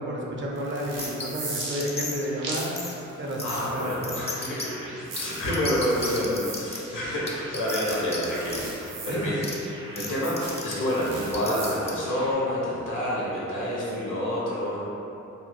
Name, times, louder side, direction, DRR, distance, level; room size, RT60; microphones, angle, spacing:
voice 1, 0.0-3.9 9.1-9.3, equal, 40° right, -2 dB, 0.5 m, -31 dB
sound 1, 0.5-12.3, right 2 dB, 80° right, 0.7 m, -40 dB
sound 2, 1.0-1.3 1.6-2.3 2.8-2.9 3.4-3.6 4.0-4.7 5.2-5.3 5.5-6.8 7.3-8.2 8.5-8.6 9.4-9.5 10.0-10.1 10.4-10.7 11.3-11.9, left 3 dB, 20° left, 0.4 m, -33 dB
voice 2, 3.4-9.4 9.9-14.8, equal, 80° left, -6 dB, 0.9 m, -28 dB
2.7 x 2.1 x 3.0 m, 2.9 s
cardioid pair, 70°, 31 cm